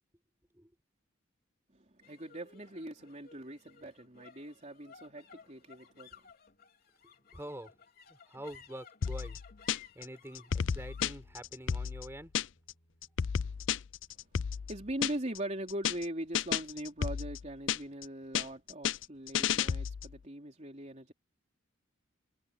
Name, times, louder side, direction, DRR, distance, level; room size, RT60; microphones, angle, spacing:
voice 1, 1.7-6.3 14.5-21.1, right 1 dB, 35° right, 3.7 m, -41 dB
sound 1, 2.0-18.6, left 6 dB, 50° left, 4.4 m, -60 dB
voice 2, 7.3-7.7 8.1-9.4 9.9-12.3, right 1 dB, 10° right, 5.1 m, -46 dB
sound 2, 9.0-10.0 10.3-12.7 13.0-15.4 15.7-16.0 16.3-18.0 18.3-20.1, left 8 dB, 65° left, 0.4 m, -32 dB
head